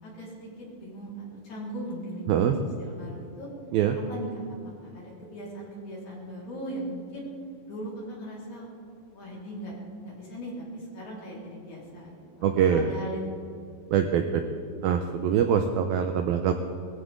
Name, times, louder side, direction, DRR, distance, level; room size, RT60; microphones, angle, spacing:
voice 1, 0.0-3.5 4.1-7.3 7.7-8.7 9.1-9.7 10.0-13.2, right 1 dB, 40° left, -6 dB, 5.4 m, -39 dB
voice 2, 12.4-12.9 13.9-14.4 14.8-16.5, right 8 dB, 85° right, 6 dB, 2.1 m, -23 dB
21.5 x 15.0 x 3.7 m, 2.6 s
omnidirectional pair, 5.1 m